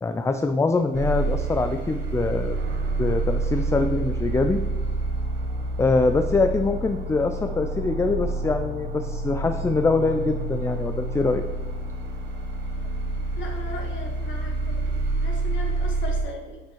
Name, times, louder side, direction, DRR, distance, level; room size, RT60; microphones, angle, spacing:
voice 1, 0.0-2.6 3.0-4.6 5.8-11.4, left 3 dB, 15° left, 7 dB, 0.3 m, -24 dB
sound 1, 0.9-16.2, right 2 dB, 65° right, 1.0 m, -28 dB
voice 2, 13.4-16.6, left 2 dB, 70° left, 1 dB, 1.4 m, -38 dB
9.4 x 4.3 x 3.1 m, 1.2 s
cardioid pair, 90°, 20 cm